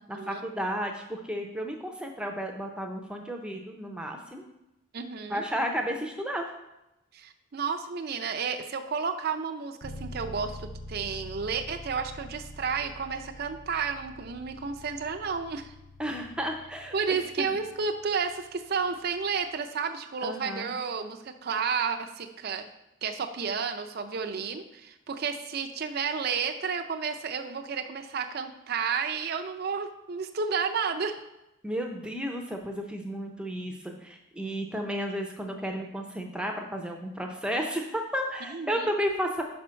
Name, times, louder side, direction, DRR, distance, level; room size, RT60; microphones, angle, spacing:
voice 1, 0.1-4.4 5.3-6.5 16.0-16.9 17.4-17.5 20.2-20.7 31.6-39.4, equal, 5° right, 2 dB, 0.6 m, -32 dB
voice 2, 4.9-5.4 7.1-15.7 16.9-22.6 23.0-31.2 38.4-38.9, right 5 dB, 50° right, 5 dB, 0.5 m, -31 dB
sound 1, 9.8-19.5, left 1 dB, 25° left, 1.1 m, -46 dB
5.3 x 4.3 x 6.2 m, 0.91 s
head